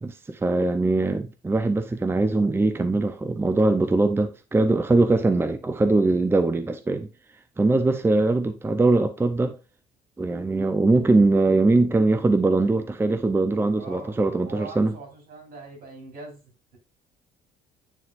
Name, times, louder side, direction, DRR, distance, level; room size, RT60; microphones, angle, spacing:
voice 1, 0.0-7.1 7.6-9.6 10.2-14.9, right 2 dB, 15° right, 0.6 m, -21 dB
voice 2, 13.8-16.8, right 3 dB, 65° right, 4.0 m, -42 dB
9.5 x 4.1 x 2.6 m
cardioid pair, 110°, 17 cm